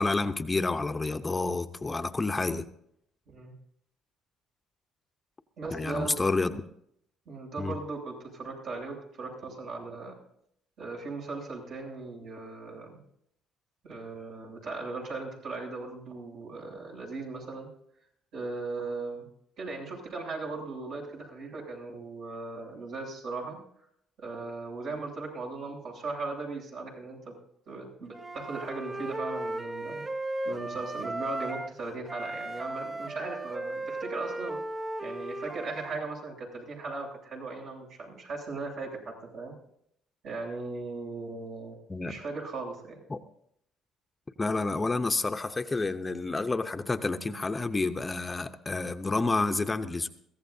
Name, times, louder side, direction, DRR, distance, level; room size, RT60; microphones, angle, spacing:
voice 1, 0.0-2.6 5.7-6.6 7.6-7.7 41.9-42.2 43.1-43.2 44.4-50.1, left 3 dB, 20° left, 0.8 m, -29 dB
voice 2, 5.6-6.6 7.3-10.1 10.8-13.0 13.8-17.7 18.3-19.3 19.6-23.6 24.2-27.4 27.7-30.0 30.4-34.6 35.0-39.5 40.2-41.8 42.0-43.0, right 3 dB, 70° right, 7.7 m, -38 dB
Wind instrument woodwind instrument, 28.1-31.8 32.1-36.0, right 1 dB, 20° right, 0.7 m, -36 dB
22.0 x 16.0 x 2.7 m
cardioid pair, 95°, 0 cm